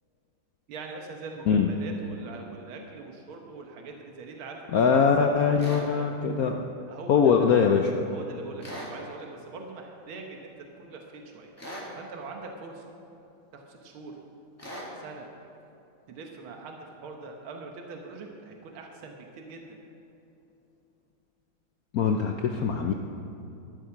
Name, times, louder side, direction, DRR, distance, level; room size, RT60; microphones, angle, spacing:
voice 1, 0.7-4.8 5.2-6.2 6.9-7.7 8.1-11.5 12.0-12.8 13.5-14.2 15.0-15.3 16.1-19.8, right 4 dB, 75° right, 2 dB, 2.0 m, -42 dB
voice 2, 4.7-6.5 7.1-7.9 21.9-22.9, left 6 dB, 70° left, 3 dB, 0.8 m, -22 dB
sound 1, 5.6-5.9 8.6-9.0 11.6-11.9 14.6-14.9, equal, 5° left, 2.0 m, -39 dB
12.5 x 12.0 x 5.9 m, 2.8 s
omnidirectional pair, 2.3 m